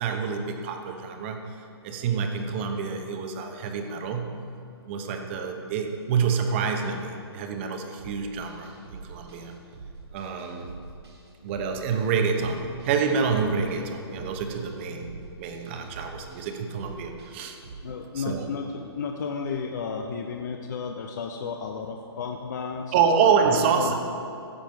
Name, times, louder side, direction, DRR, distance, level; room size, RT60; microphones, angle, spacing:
voice 1, 0.0-1.6 1.8-4.4 4.9-9.5 10.1-10.7 11.4-17.6 18.1-18.5 22.9-23.9, right 6 dB, 25° right, 5 dB, 0.9 m, -27 dB
sound 1, 8.0-17.8, right 4 dB, 75° right, 2.5 m, -45 dB
voice 2, 17.8-23.0 23.5-23.9, left 5 dB, 40° left, 3 dB, 0.6 m, -33 dB
15.0 x 7.2 x 4.6 m, 2.6 s
hypercardioid pair, 160°, 14 cm